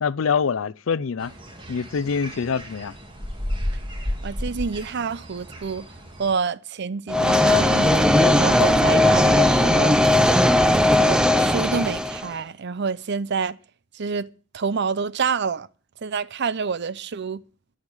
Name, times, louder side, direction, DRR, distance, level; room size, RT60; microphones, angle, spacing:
voice 1, 0.0-1.3 1.7-2.9, left 6 dB, 75° left, 0.5 m, -25 dB
sound 1, 1.2-6.3, equal, 25° right, 2.1 m, -33 dB
voice 2, 4.2-5.9 6.2-10.0 11.0-13.6 13.9-14.3 14.5-15.7 16.0-17.4, right 5 dB, 60° right, 0.6 m, -27 dB
sound 2, 7.1-12.3, left 1 dB, 5° right, 0.7 m, -18 dB
13.0 x 6.6 x 8.9 m
head